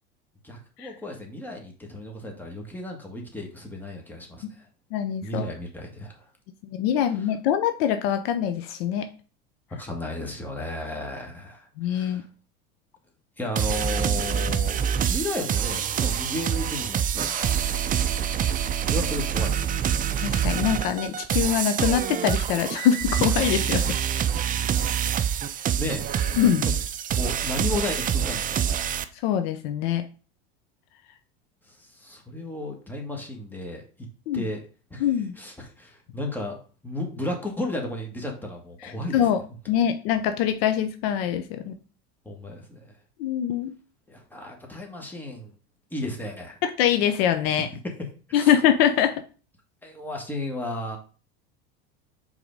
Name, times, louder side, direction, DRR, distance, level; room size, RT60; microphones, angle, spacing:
voice 1, 0.4-4.6 5.2-6.2 9.8-12.2 13.4-14.8 15.1-17.8 18.9-19.6 25.8-26.5 27.2-28.6 31.7-33.8 34.3-34.6 34.9-35.1 35.4-36.6 36.8-39.3 42.2-42.9 44.1-45.5 45.9-46.5 48.3-48.5 49.8-51.0, left 1 dB, 5° left, 1 dB, 1.7 m, -34 dB
voice 2, 4.9-5.5 6.7-9.1 11.8-12.2 20.2-23.9 26.4-26.7 29.2-30.0 34.3-34.4 35.0-35.3 38.8-39.4 39.7-41.8 43.2-43.7 46.6-47.7 48.3-49.1, left 9 dB, 70° left, 9 dB, 0.7 m, -24 dB
sound 1, 13.6-29.0, right 8 dB, 25° right, 0.5 m, -26 dB
4.7 x 3.8 x 5.2 m, 0.37 s
supercardioid pair, 105°, 31 cm